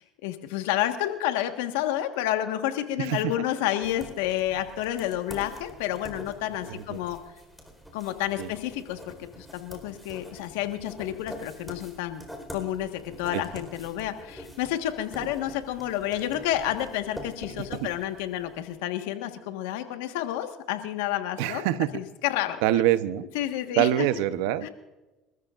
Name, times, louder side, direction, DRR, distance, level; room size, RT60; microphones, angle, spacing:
voice 1, 0.0-7.2 7.9-12.2 12.5-21.6 21.9-22.6 23.3-24.1 24.6-24.7, left 12 dB, 90° left, 7 dB, 1.5 m, -30 dB
voice 2, 3.0-3.3 6.7-7.0 8.4-8.5 13.3-13.4 17.6-17.9 21.4-21.9 22.6-23.3 23.8-24.7, right 13 dB, 85° right, 13 dB, 0.8 m, -25 dB
sound 1, 3.8-18.6, equal, ahead, 4.3 m, -45 dB
27.5 x 14.0 x 2.5 m, 1.1 s
supercardioid pair, 95°, 0 cm